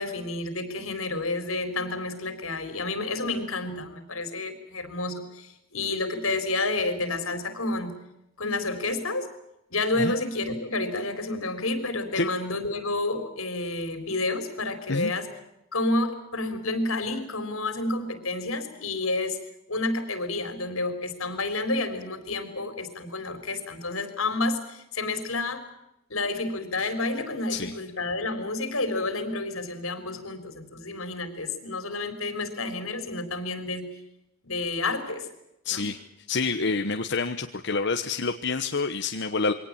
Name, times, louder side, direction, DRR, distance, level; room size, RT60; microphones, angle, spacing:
voice 1, 0.0-8.0 8.4-9.3 9.7-15.3 15.7-19.4 19.7-25.6 26.1-33.9 34.4-35.3 35.7-35.9, left 2 dB, 85° left, 9 dB, 3.9 m, -30 dB
voice 2, 35.6-36.0 36.3-39.5, left 4 dB, 55° left, 6 dB, 1.1 m, -27 dB
23.0 x 18.5 x 8.7 m, 0.88 s
head